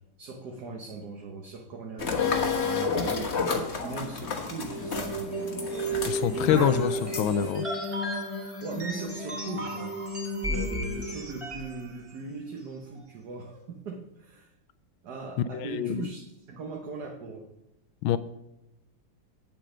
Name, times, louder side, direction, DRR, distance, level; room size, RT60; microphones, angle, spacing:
voice 1, 0.2-5.7 6.3-6.7 8.6-9.9 10.4-14.5 15.0-16.2 16.5-17.5, right 4 dB, 55° right, 1 dB, 1.5 m, -39 dB
sound 1, 2.0-7.5, left 5 dB, 40° left, 1.2 m, -31 dB
sound 2, 4.6-11.8, right 1 dB, 15° right, 2.3 m, -33 dB
voice 2, 6.1-7.6 15.5-16.1 18.0-18.2, left 10 dB, 80° left, 13 dB, 1.3 m, -26 dB
8.5 x 7.5 x 5.1 m, 0.93 s
omnidirectional pair, 2.3 m